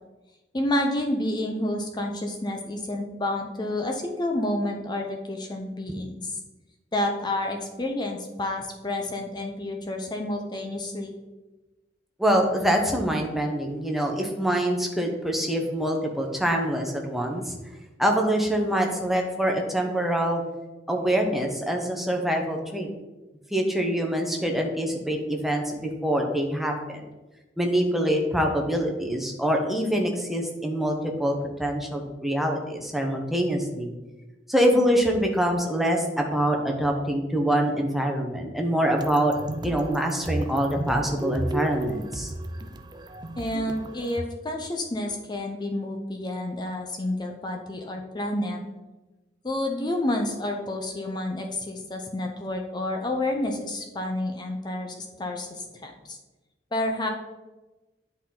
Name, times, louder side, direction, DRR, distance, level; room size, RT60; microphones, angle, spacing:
voice 1, 0.5-6.4 6.9-11.1 43.4-48.6 49.4-56.2 56.7-57.1, left 1 dB, 25° left, 2 dB, 0.7 m, -29 dB
voice 2, 12.2-17.5 18.0-20.4 20.9-22.9 23.5-27.0 27.6-30.9 31.2-33.9 34.5-39.3 39.6-42.3, equal, ahead, 1 dB, 0.9 m, -25 dB
sound 1, 39.0-44.3, right 1 dB, 25° right, 0.5 m, -34 dB
9.8 x 4.3 x 3.8 m, 1.1 s
head